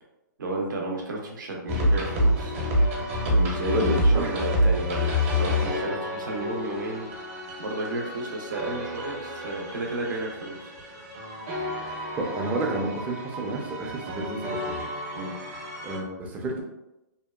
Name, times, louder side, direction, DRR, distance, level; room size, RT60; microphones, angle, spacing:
voice 1, 0.4-2.5 3.2-7.1 7.6-10.7 15.1-15.3, right 2 dB, 80° right, -1 dB, 0.6 m, -32 dB
sound 1, 1.7-16.0, equal, 45° right, 0.7 m, -28 dB
voice 2, 3.7-4.3 12.2-14.9 15.8-16.6, right 2 dB, 15° right, -1 dB, 0.4 m, -30 dB
2.8 x 2.2 x 2.2 m, 0.95 s
hypercardioid pair, 140°, 10 cm